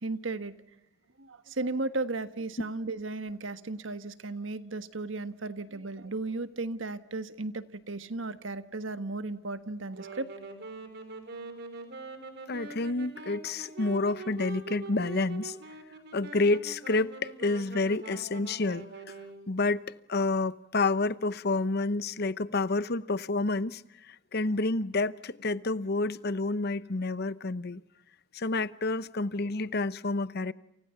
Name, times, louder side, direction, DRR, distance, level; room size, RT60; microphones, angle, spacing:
voice 1, 0.0-0.5 1.2-10.3, right 3 dB, 80° right, 1.5 m, -35 dB
Wind instrument woodwind instrument, 9.8-19.5, right 3 dB, 60° right, 4.1 m, -43 dB
voice 2, 12.5-15.6 16.1-19.1 19.5-19.8 20.1-27.8 28.3-30.5, left 3 dB, 55° left, 0.9 m, -29 dB
30.0 x 28.5 x 5.8 m
head